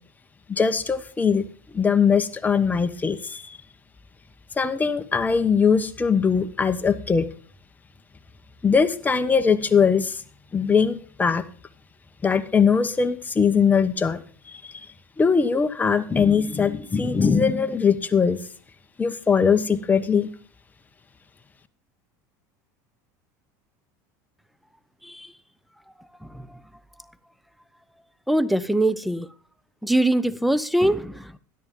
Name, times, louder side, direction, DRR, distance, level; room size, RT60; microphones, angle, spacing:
voice 1, 0.5-1.4 1.7-3.6 4.6-7.3 8.6-10.2 10.5-11.4 12.2-14.2 14.5-14.9 15.2-18.4 19.0-20.3, left 6 dB, 15° left, 1.1 m, -21 dB
voice 2, 28.3-29.3 29.8-31.4, right 1 dB, ahead, 0.7 m, -22 dB
13.0 x 10.5 x 3.8 m
supercardioid pair, 110°, 10 cm